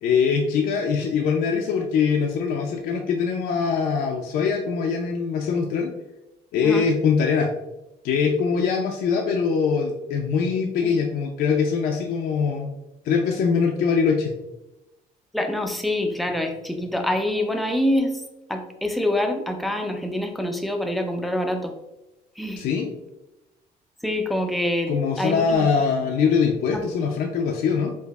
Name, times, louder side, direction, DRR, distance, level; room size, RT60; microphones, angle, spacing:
voice 1, 0.0-5.9 6.5-7.5 8.0-12.7 13.0-14.3 22.6-22.9 24.9-28.0, left 6 dB, 65° left, 2 dB, 0.4 m, -22 dB
voice 2, 15.3-18.2 18.5-21.7 22.4-22.6 24.0-24.9 25.2-25.7 26.7-26.8, left 1 dB, ahead, 4 dB, 0.4 m, -25 dB
4.6 x 2.5 x 2.3 m, 0.96 s
cardioid pair, 110°, 17 cm